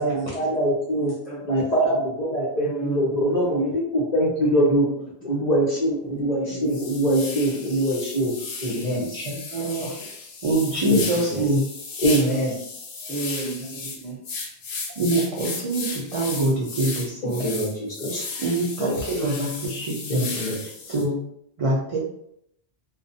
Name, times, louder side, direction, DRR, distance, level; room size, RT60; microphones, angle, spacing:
voice 1, 0.0-1.1 1.5-4.9 5.2-8.3 8.6-9.0 10.8-11.0 12.0-12.5 17.4-18.3 20.1-20.6, right 1 dB, 50° left, -5 dB, 0.6 m, -23 dB
voice 2, 1.2-2.0 2.6-3.7 4.6-4.9 5.2-5.4 6.0-6.8 7.1-7.6 8.7-8.9 11.3-11.5 13.1-14.2, right 3 dB, ahead, -7 dB, 0.8 m, -34 dB
sound 1, 6.1-6.2 6.7-21.0, left 4 dB, 80° left, 0.9 m, -35 dB
voice 3, 8.7-9.9 10.4-11.6 15.0-17.5 18.4-20.3 20.6-21.2 21.6-22.0, right 1 dB, 50° right, -5 dB, 0.4 m, -25 dB
2.3 x 2.1 x 2.6 m, 0.74 s
omnidirectional pair, 1.1 m